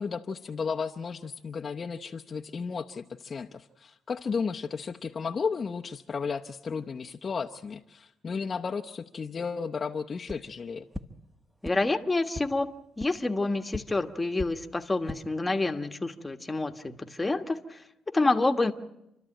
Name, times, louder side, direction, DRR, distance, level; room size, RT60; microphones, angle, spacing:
voice 1, 0.0-10.9, left 5 dB, 40° left, 3 dB, 0.8 m, -34 dB
sound 1, 10.2-10.4 10.9-11.0 11.6-11.7 12.3-12.4 13.0-13.1 13.7-13.8 14.3-14.5 14.9-15.2, left 1 dB, 5° right, 1.3 m, -36 dB
voice 2, 11.6-12.7 13.0-17.8 18.1-18.7, left 2 dB, 20° left, 6 dB, 1.4 m, -28 dB
28.5 x 13.0 x 9.0 m, 0.87 s
cardioid pair, 90°, 0 cm